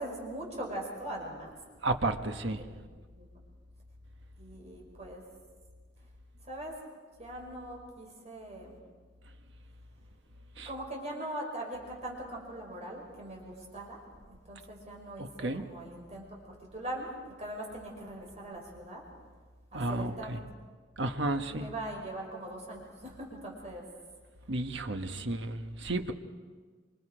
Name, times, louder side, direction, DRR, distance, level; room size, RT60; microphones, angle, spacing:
voice 1, 0.0-1.5 2.5-2.8 3.1-3.3 4.4-5.2 6.5-6.7 7.2-8.8 10.6-16.2 16.7-19.0 19.7-20.4 21.4-23.8 25.0-25.4, right 1 dB, 35° right, -1 dB, 5.1 m, -41 dB
voice 2, 1.8-2.6 10.6-10.7 15.2-15.6 19.7-20.4 21.0-21.7 24.5-26.1, right 2 dB, 65° right, 6 dB, 1.4 m, -32 dB
27.0 x 26.0 x 5.1 m, 1.5 s
head